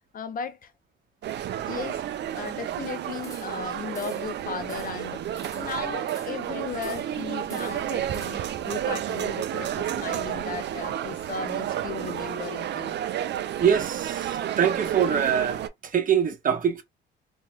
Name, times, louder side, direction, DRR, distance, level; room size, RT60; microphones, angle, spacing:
voice 1, 0.1-0.7 1.6-2.1 2.3-5.2 5.5-13.0, left 7 dB, 45° left, 0.6 m, -36 dB
sound 1, 1.2-15.7, right 11 dB, 60° right, 0.5 m, -31 dB
sound 2, 3.2-3.7 3.9-4.3 4.7-5.0 5.4-6.5 6.8-7.2 7.5-8.6, left 1 dB, 15° left, 1.2 m, -47 dB
voice 2, 13.6-16.8, right 8 dB, 45° right, 1.0 m, -24 dB
2.7 x 2.2 x 3.1 m
cardioid pair, 90°, 20 cm